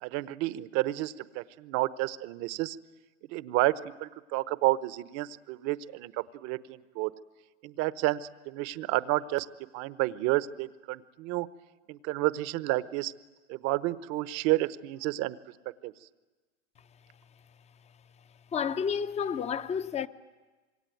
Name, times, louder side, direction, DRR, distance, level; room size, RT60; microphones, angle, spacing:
voice 1, 0.0-2.8 3.3-7.1 7.6-9.5 9.7-11.5 11.9-13.1 13.5-15.4 15.8-15.9, right 18 dB, 45° right, 1.0 m, -30 dB
voice 2, 18.5-20.1, left 7 dB, 20° left, 0.8 m, -30 dB
26.0 x 23.0 x 9.3 m
hypercardioid pair, 125°, 36 cm